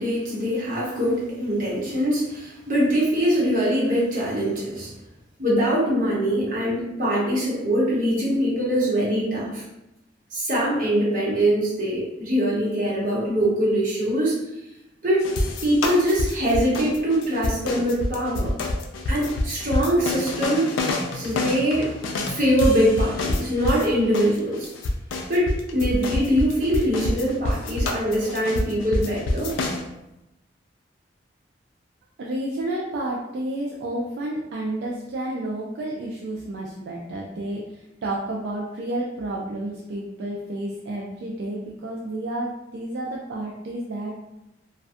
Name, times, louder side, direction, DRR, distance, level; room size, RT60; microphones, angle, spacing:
voice 1, 0.0-4.9 5.4-9.6 10.3-14.4 15.0-15.3 15.6-18.5 19.1-20.7 21.1-21.9 22.3-24.7 25.3-29.5, equal, 45° right, -7 dB, 0.9 m, -23 dB
sound 1, 15.2-23.9 24.1-29.8, left 2 dB, 90° left, 0.4 m, -27 dB
voice 2, 32.2-44.2, right 1 dB, 65° right, -3 dB, 0.3 m, -31 dB
2.5 x 2.2 x 2.4 m, 0.92 s
head